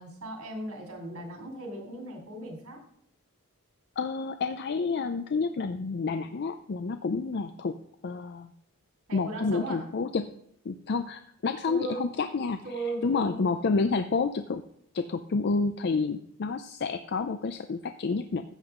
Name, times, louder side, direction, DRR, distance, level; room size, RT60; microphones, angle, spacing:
voice 1, 0.0-2.8 9.1-9.8 11.6-12.0 12.6-13.4, right 2 dB, 75° right, 1 dB, 3.2 m, -37 dB
voice 2, 4.0-7.7 8.0-8.5 9.1-10.3 10.7-12.6 13.0-14.6 14.9-18.4, left 4 dB, 50° left, 9 dB, 0.5 m, -29 dB
13.5 x 7.9 x 3.7 m, 0.69 s
head